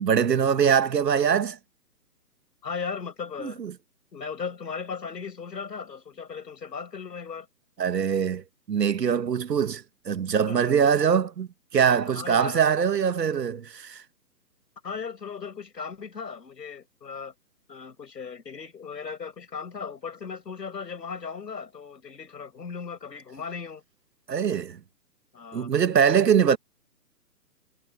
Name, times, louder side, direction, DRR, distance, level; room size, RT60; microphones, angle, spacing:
voice 1, 0.0-1.6 3.4-3.7 7.8-14.0 24.3-24.8 25.5-26.6, right 7 dB, 75° right, 1.4 m, -23 dB
voice 2, 2.6-3.6 4.1-7.5 10.5-10.6 12.0-12.6 14.8-17.3 17.7-23.8 25.3-25.7, left 5 dB, 80° left, 6.5 m, -37 dB
hypercardioid pair, 180°, 49 cm